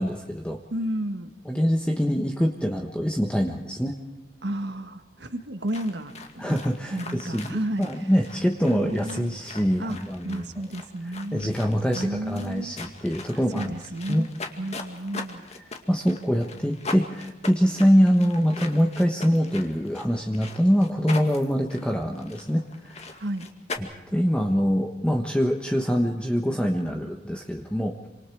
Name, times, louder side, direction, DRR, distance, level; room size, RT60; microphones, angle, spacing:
voice 1, 0.0-0.6 1.5-4.0 6.4-10.5 11.3-13.7 14.1-14.3 15.9-23.0 23.8-28.0, equal, 5° left, 3 dB, 1.2 m, -24 dB
voice 2, 0.7-1.3 4.4-6.6 6.9-8.1 8.6-9.4 9.8-10.0 10.2-11.5 11.9-12.7 13.3-14.3 14.6-15.4 23.1-23.5, right 1 dB, 65° right, 7 dB, 1.6 m, -32 dB
sound 1, 5.7-23.8, left 3 dB, 35° left, 2.2 m, -41 dB
28.0 x 26.0 x 4.8 m, 1.0 s
head